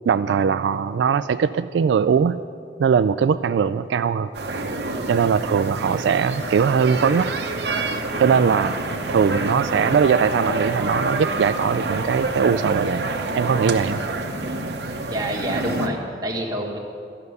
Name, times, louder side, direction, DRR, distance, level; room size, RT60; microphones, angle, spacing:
voice 1, 0.1-2.4 2.8-4.3 5.1-7.3 8.2-14.0, right 6 dB, 85° right, 12 dB, 0.3 m, -20 dB
sound 1, 4.3-15.9, right 2 dB, 65° right, 0.9 m, -27 dB
voice 2, 15.1-16.8, right 1 dB, 25° right, -1 dB, 1.6 m, -27 dB
13.0 x 6.7 x 9.6 m, 2.4 s
head